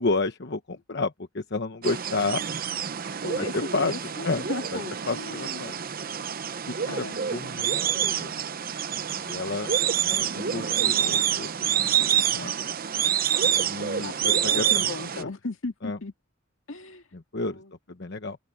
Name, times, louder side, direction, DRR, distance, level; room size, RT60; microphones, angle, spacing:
voice 1, 0.0-2.4 3.4-3.9 4.2-4.8 5.1-5.8 6.7-7.1 7.3-8.3 9.2-9.8 10.0-12.1 12.3-12.5 13.6-14.9 15.2-15.3 15.8-16.0 17.1-17.6 17.9-18.4, left 3 dB, 60° left, 1.0 m, -31 dB
sound 1, 1.8-15.2, right 9 dB, 45° right, 0.8 m, -27 dB
voice 2, 3.2-5.6 6.9-7.2 14.0-16.1 16.7-17.0 17.4-17.7, left 3 dB, 80° left, 2.1 m, -36 dB
head